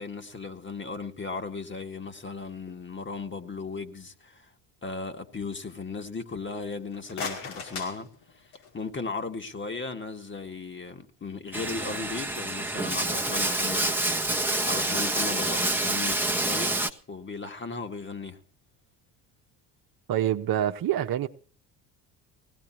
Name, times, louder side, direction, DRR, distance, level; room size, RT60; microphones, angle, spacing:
voice 1, 0.0-4.5 4.8-14.0 14.6-18.4, left 4 dB, 25° left, 2.1 m, -36 dB
sound 1, 6.8-8.9, left 5 dB, 90° left, 5.4 m, -38 dB
Bathtub (filling or washing), 11.5-16.9, right 2 dB, 5° right, 1.3 m, -27 dB
voice 2, 20.1-21.3, right 11 dB, 55° right, 1.2 m, -26 dB
20.0 x 17.5 x 2.9 m
supercardioid pair, 75°, 43 cm